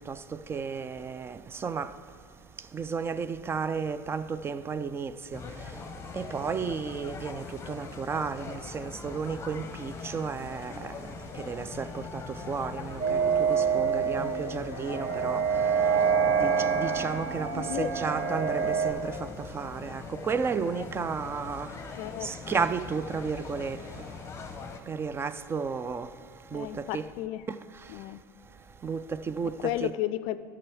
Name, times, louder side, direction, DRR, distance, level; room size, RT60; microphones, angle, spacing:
voice 1, 0.1-1.9 2.7-5.4 6.1-10.9 11.4-15.4 16.4-21.7 22.2-24.0 24.9-26.1 26.5-27.1 27.5-27.6 28.8-29.9, right 5 dB, 20° right, 0.4 m, -33 dB
sound 1, 5.3-24.8, left 4 dB, 25° left, 0.8 m, -42 dB
sound 2, 13.0-18.9, right 6 dB, 55° right, 1.7 m, -26 dB
voice 2, 17.5-17.9 22.0-22.3 26.5-27.4 27.9-28.2 29.6-30.4, left 14 dB, 55° left, 0.4 m, -33 dB
11.5 x 6.1 x 4.7 m
hypercardioid pair, 90°, 11 cm